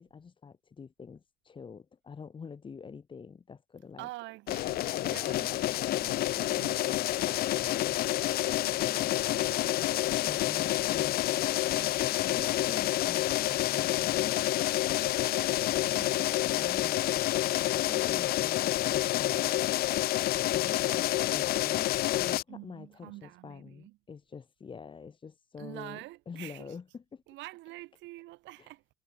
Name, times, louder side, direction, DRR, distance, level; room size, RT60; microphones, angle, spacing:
voice 1, 0.0-4.1 5.0-5.6 6.9-9.2 10.2-14.4 16.4-19.5 20.5-21.9 22.1-26.0 26.3-27.2, left 5 dB, 25° left, 2.9 m, -47 dB
voice 2, 4.0-7.0 8.0-10.0 10.7-11.1 15.0-16.4 22.5-24.0 25.6-26.8 27.3-28.8, right 19 dB, 65° right, 3.2 m, -48 dB
sound 1, 4.5-22.4, left 15 dB, 50° left, 0.7 m, -28 dB
cardioid pair, 120°, 20 cm